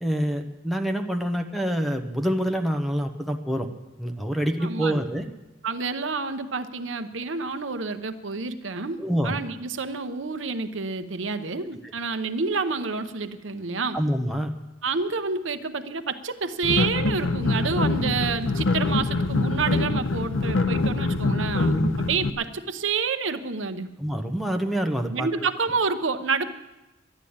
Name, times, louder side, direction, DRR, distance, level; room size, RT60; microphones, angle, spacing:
voice 1, 0.0-3.7 4.0-5.3 9.0-9.4 13.9-14.5 21.6-21.9 24.0-25.3, equal, ahead, 5 dB, 0.9 m, -26 dB
voice 2, 4.6-5.0 5.6-9.0 9.2-14.0 14.8-23.9 25.1-26.5, right 4 dB, 80° right, 10 dB, 0.8 m, -28 dB
sound 1, 16.6-22.3, left 3 dB, 85° left, 0.7 m, -24 dB
11.5 x 11.5 x 8.7 m, 1.0 s
head